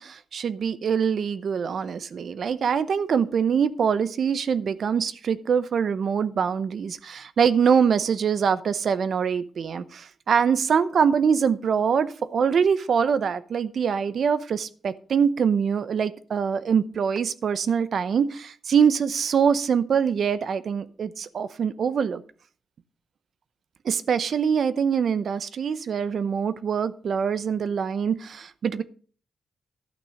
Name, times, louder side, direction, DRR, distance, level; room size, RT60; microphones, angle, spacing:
voice 1, 0.0-22.2 23.8-28.8, right 7 dB, 65° right, 14 dB, 0.7 m, -24 dB
11.5 x 6.2 x 6.3 m, 0.42 s
cardioid pair, 90°, 0 cm